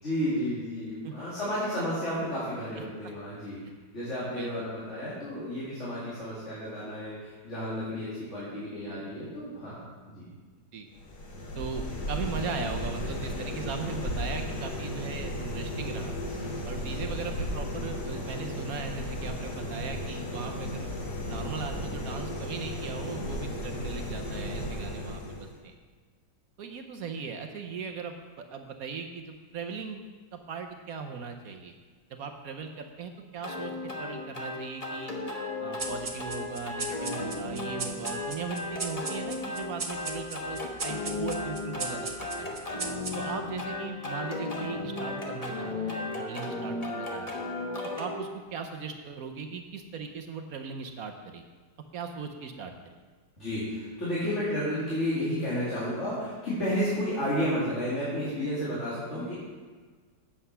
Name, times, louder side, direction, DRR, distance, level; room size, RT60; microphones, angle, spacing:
voice 1, 0.0-3.6 3.9-10.3 53.4-59.3, equal, 45° left, -9 dB, 2.9 m, -32 dB
voice 2, 4.1-4.5 10.7-10.9 11.5-16.1 16.7-20.9 21.3-25.7 26.6-30.0 30.3-31.7 32.1-33.7 34.0-35.1 35.6-42.5 43.1-47.4 47.8-51.4 51.9-52.7, right 5 dB, 65° right, 5 dB, 1.1 m, -38 dB
sound 1, 10.9-25.6, left 1 dB, 85° left, 2.0 m, -35 dB
sound 2, 33.4-48.2, left 2 dB, 25° left, 1.1 m, -35 dB
sound 3, 35.8-43.5, right 3 dB, 45° right, 0.4 m, -39 dB
8.6 x 7.9 x 5.5 m, 1.5 s
omnidirectional pair, 1.7 m